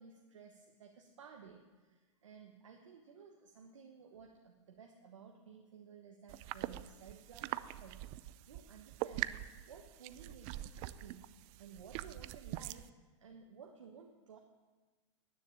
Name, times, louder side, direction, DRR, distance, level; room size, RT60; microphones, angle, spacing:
voice 1, 0.0-9.3 9.6-11.3 11.6-14.4, right 6 dB, 75° right, 2 dB, 1.4 m, -56 dB
sound 1, 6.3-12.9, right 15 dB, 40° right, 0.5 m, -43 dB
10.0 x 9.8 x 9.1 m, 1.3 s
hypercardioid pair, 110°, 16 cm